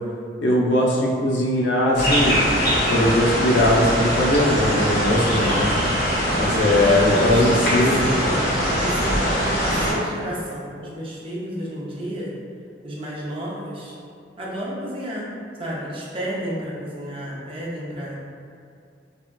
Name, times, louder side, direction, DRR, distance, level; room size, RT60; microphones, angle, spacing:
voice 1, 0.4-2.4 2.9-5.7 6.3-7.9, left 1 dB, 80° left, -4 dB, 0.5 m, -20 dB
sound 1, 2.0-9.9, equal, 60° left, 1.0 m, -22 dB
voice 2, 6.4-8.4 8.8-12.3 12.8-13.9 14.4-15.3 15.6-18.2, equal, 30° right, -6 dB, 0.5 m, -31 dB
3.5 x 2.2 x 2.2 m, 2.3 s
head